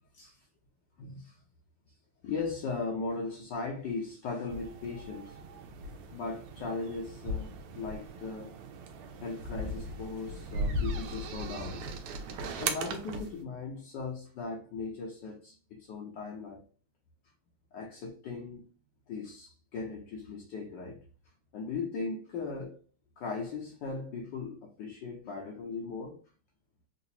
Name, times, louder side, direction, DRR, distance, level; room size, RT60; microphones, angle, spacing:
voice 1, 1.0-1.4 2.2-5.4 6.1-8.5 9.2-11.8 12.6-16.6 17.7-18.7 19.1-21.0 21.5-22.8 23.2-26.2, left 4 dB, 70° left, 1.1 m, -38 dB
sound 1, 4.5-13.4, right 1 dB, 85° right, 1.5 m, -38 dB
3.8 x 2.4 x 2.8 m
omnidirectional pair, 2.4 m